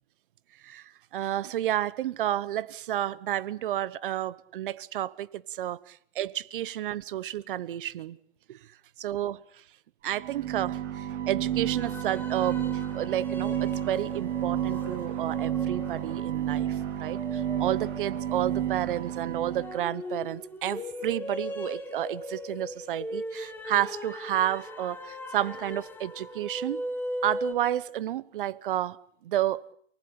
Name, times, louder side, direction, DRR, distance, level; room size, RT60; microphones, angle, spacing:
voice 1, 0.6-8.2 8.5-8.6 9.0-9.4 10.0-26.8 27.2-29.0 29.2-29.6, right 12 dB, 45° right, 1.0 m, -31 dB
sound 1, 10.1-19.8, right 11 dB, 75° right, 3.9 m, -31 dB
sound 2, 11.6-27.5, left 1 dB, 5° left, 1.6 m, -39 dB
28.5 x 19.5 x 8.6 m
hypercardioid pair, 170°, 36 cm